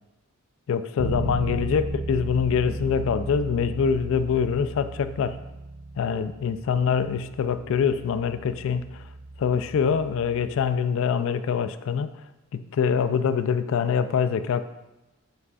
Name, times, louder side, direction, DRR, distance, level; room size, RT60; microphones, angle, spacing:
voice 1, 0.7-5.4 6.0-8.9 9.4-12.2 12.5-14.6, left 6 dB, 65° left, 12 dB, 0.3 m, -24 dB
Bass guitar, 1.0-10.8, right 2 dB, 45° right, 0.4 m, -36 dB
8.3 x 4.9 x 2.3 m, 0.99 s
head